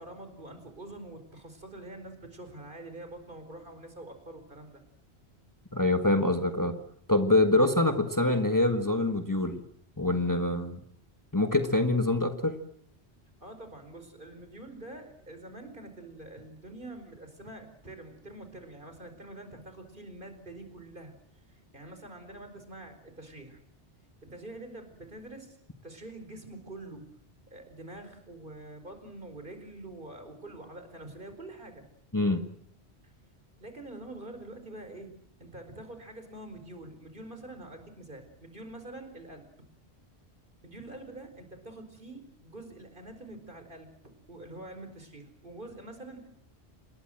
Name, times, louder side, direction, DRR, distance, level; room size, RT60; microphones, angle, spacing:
voice 1, 0.0-4.8 13.4-21.1 21.5-23.6 24.2-25.6 25.8-27.1 27.5-31.8 33.6-35.1 35.4-39.5 40.6-43.9 44.3-46.3, right 2 dB, 50° right, 7 dB, 4.8 m, -45 dB
voice 2, 5.7-6.7 7.1-9.6 10.0-10.8 11.3-12.6 32.1-32.4, left 2 dB, 15° left, 7 dB, 1.5 m, -25 dB
27.0 x 21.0 x 7.7 m, 0.69 s
omnidirectional pair, 1.1 m